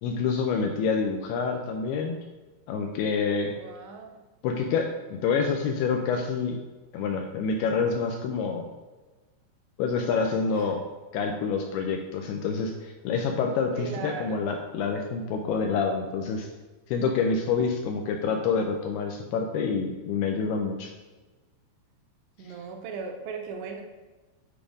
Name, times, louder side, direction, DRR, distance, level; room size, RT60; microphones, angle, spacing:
voice 1, 0.0-2.1 2.7-3.5 4.4-6.6 6.9-8.7 9.8-10.8 11.1-16.5 16.9-20.9, left 5 dB, 85° left, 2 dB, 2.4 m, -27 dB
voice 2, 3.6-4.2 10.6-10.7 13.8-14.6 22.4-23.8, right 5 dB, 85° right, 3 dB, 2.9 m, -38 dB
9.0 x 3.5 x 4.9 m, 1.2 s
omnidirectional pair, 5.1 m